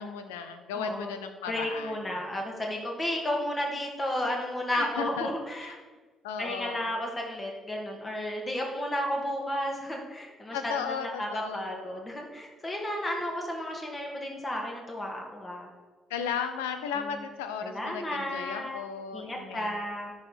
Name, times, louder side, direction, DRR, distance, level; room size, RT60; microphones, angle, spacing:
voice 1, 0.0-2.0 4.7-5.3 5.6-5.8 6.2-6.8 10.5-12.1 16.1-19.9, left 7 dB, 75° left, 8 dB, 0.7 m, -35 dB
voice 2, 0.7-1.1 1.5-5.8 6.4-15.7 16.9-17.2 17.6-18.8 19.1-20.1, left 1 dB, 30° left, 0 dB, 2.6 m, -33 dB
10.5 x 4.8 x 5.9 m, 1.3 s
figure-of-eight pair, 45°, 0 cm